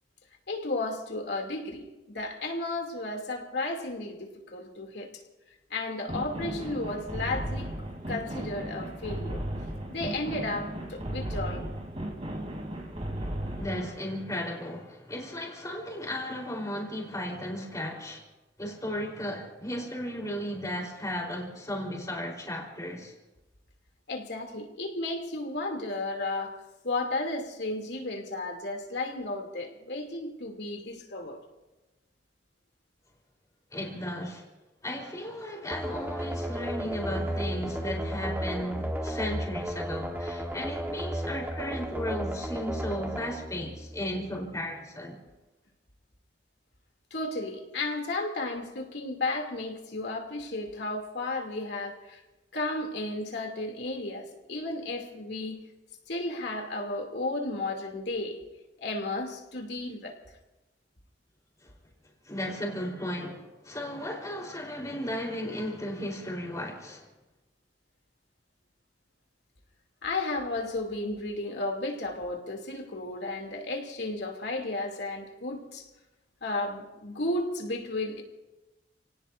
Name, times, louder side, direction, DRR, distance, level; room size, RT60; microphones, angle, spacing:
voice 1, 0.5-5.1 5.7-7.7 8.1-9.4 9.9-11.7 24.1-26.6 26.8-31.4 47.1-52.2 52.5-55.6 56.1-58.4 58.8-60.2 70.0-75.9 76.4-78.2, left 2 dB, 70° left, 2.8 m, -33 dB
sound 1, 6.1-13.9, right 1 dB, 35° right, 3.2 m, -35 dB
voice 2, 13.6-18.2 18.6-23.1 33.7-34.4 34.8-45.2 62.3-67.1, left 1 dB, 20° left, 3.9 m, -35 dB
sound 2, 35.7-44.4, equal, 10° right, 1.3 m, -34 dB
30.0 x 18.5 x 2.7 m
head